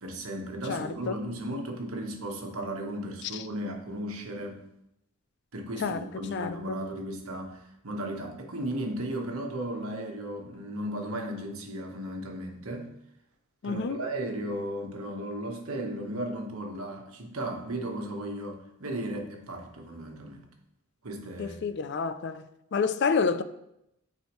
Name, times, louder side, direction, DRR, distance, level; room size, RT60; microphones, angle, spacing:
voice 1, 0.0-4.6 5.5-12.9 13.6-20.5 21.0-21.6, right 1 dB, 85° right, 1.3 m, -35 dB
voice 2, 0.7-1.2 3.3-3.4 5.8-6.0 6.3-6.8 13.6-14.0 21.4-22.4 22.7-23.4, left 5 dB, 55° left, 0.4 m, -29 dB
9.1 x 4.9 x 3.1 m
head